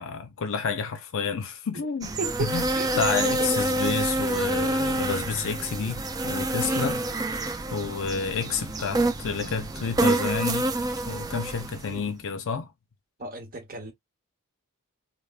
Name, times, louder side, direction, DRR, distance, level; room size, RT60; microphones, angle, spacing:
voice 1, 0.0-2.1 2.4-2.7 3.0-7.0 7.7-10.7 11.1-12.7, left 5 dB, 60° left, 0.5 m, -29 dB
sound 1, 2.0-12.0, right 2 dB, 15° right, 0.4 m, -27 dB
voice 2, 2.2-3.0 3.4-3.6 6.7-7.0 11.9-12.2 13.2-13.9, right 3 dB, 40° right, 1.0 m, -35 dB
3.4 x 2.1 x 2.4 m
head